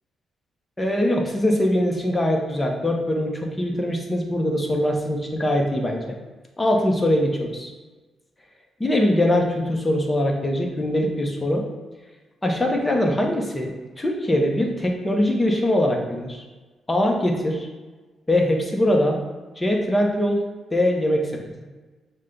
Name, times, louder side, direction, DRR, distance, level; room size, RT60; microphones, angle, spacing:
voice 1, 0.8-6.0 6.6-7.7 8.8-11.6 12.4-13.7 14.0-16.4 16.9-17.7 18.3-19.2 19.6-20.4 20.7-21.4, left 1 dB, 15° left, 1 dB, 0.7 m, -22 dB
6.2 x 2.2 x 3.8 m, 1.3 s
cardioid pair, 120°, 0 cm